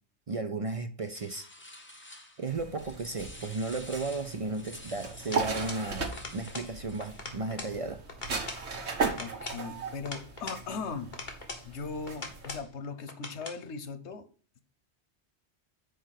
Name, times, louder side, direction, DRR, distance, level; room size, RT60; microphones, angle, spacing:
voice 1, 0.3-1.5 2.4-8.0, right 3 dB, 40° right, 0.5 m, -34 dB
sound 1, 1.1-2.5 2.8-7.4, left 1 dB, 10° left, 0.9 m, -49 dB
sound 2, 2.5-12.6, right 4 dB, 75° right, 1.5 m, -37 dB
sound 3, 5.3-5.9 6.1-6.7 7.0-7.8 8.1-8.7 9.1-10.6 11.1-11.7 12.1-12.7 13.1-13.6, left 2 dB, 45° left, 1.5 m, -41 dB
voice 2, 9.2-11.4 11.6-14.2, left 5 dB, 90° left, 1.2 m, -39 dB
6.2 x 4.7 x 6.4 m
omnidirectional pair, 1.1 m